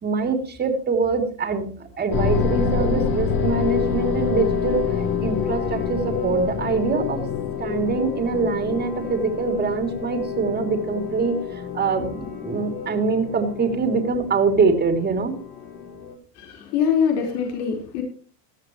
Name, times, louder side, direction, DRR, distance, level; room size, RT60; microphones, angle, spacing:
voice 1, 0.0-4.9 5.2-7.3 7.6-15.4, right 4 dB, 20° right, 5 dB, 2.8 m, -24 dB
sound 1, 2.1-16.1, left 6 dB, 45° left, 3.4 m, -27 dB
voice 2, 16.4-18.0, left 7 dB, 75° left, 3 dB, 4.4 m, -23 dB
18.0 x 12.0 x 3.1 m, 0.42 s
supercardioid pair, 125°, 47 cm